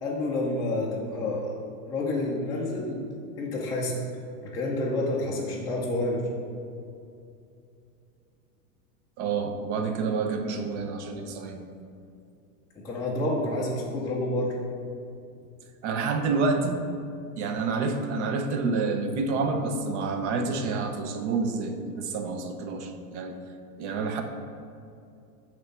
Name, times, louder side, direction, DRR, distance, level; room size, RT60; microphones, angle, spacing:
voice 1, 0.0-1.5 1.8-3.0 3.4-4.0 4.4-6.2 12.8-14.6, left 2 dB, 5° left, -7 dB, 0.5 m, -29 dB
voice 2, 9.2-11.6 15.8-16.8 17.4-23.4 23.8-24.2, right 4 dB, 45° right, 5 dB, 0.9 m, -28 dB
9.5 x 3.2 x 6.8 m, 2.5 s
supercardioid pair, 145°, 48 cm